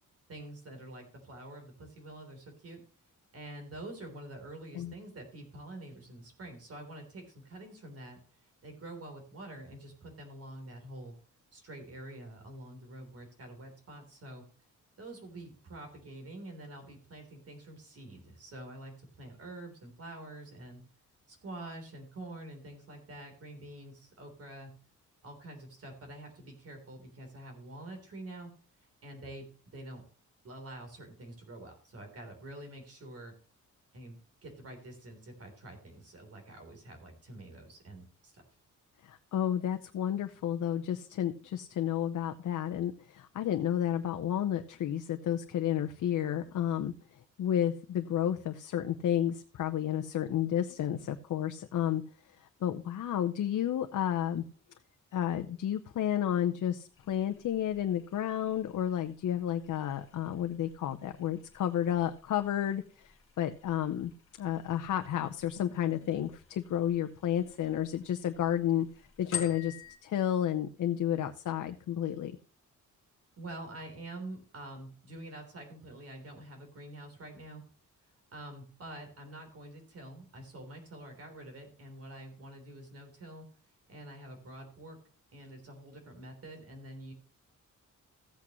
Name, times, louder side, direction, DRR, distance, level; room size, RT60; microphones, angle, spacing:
voice 1, 0.3-2.8 3.3-11.1 11.5-14.4 15.0-20.8 21.3-24.7 25.2-28.5 28.8-29.5 29.7-30.0 30.4-33.3 33.9-38.4 73.4-77.6 78.3-83.5 83.9-85.0 85.3-87.1, right 1 dB, 50° right, 4 dB, 3.6 m, -47 dB
voice 2, 39.0-52.0 52.4-54.4 55.1-64.1 64.4-68.9 69.2-69.8 70.0-72.3, left 10 dB, 70° left, 7 dB, 0.7 m, -31 dB
sound 1, 56.9-70.0, left 7 dB, 45° left, 1.5 m, -49 dB
15.0 x 8.5 x 3.0 m, 0.41 s
wide cardioid pair, 175°, 31 cm